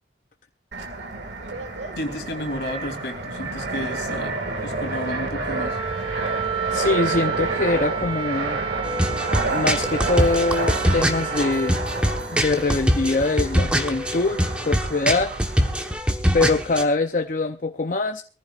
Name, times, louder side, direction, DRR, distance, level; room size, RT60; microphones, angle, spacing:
Fixed-wing aircraft airplane, 0.7-16.0, right 2 dB, 80° right, 1.9 m, -30 dB
voice 1, 2.0-4.3 4.6-5.8, left 1 dB, 70° left, 5 dB, 2.9 m, -32 dB
Wind instrument woodwind instrument, 5.5-11.8, right 8 dB, 30° right, 0.7 m, -30 dB
voice 2, 6.3-8.6 9.5-11.8 12.3-15.3 16.3-18.2, left 3 dB, 45° left, 6 dB, 0.6 m, -23 dB
sound 1, 8.8-16.8, equal, 5° right, 1.1 m, -23 dB
23.0 x 15.0 x 2.4 m, 0.38 s
head